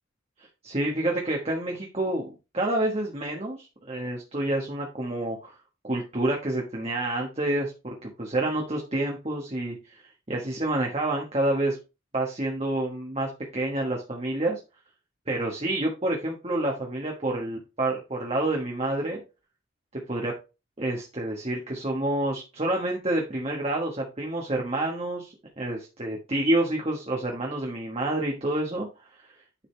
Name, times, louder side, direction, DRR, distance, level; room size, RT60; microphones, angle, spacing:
voice 1, 0.6-2.3 2.5-5.6 5.8-10.0 10.3-11.8 12.1-14.6 15.3-19.2 19.9-20.3 20.8-28.9 29.2-29.3, right 1 dB, 30° right, 0 dB, 1.4 m, -28 dB
10.0 x 5.3 x 3.3 m, 0.29 s
head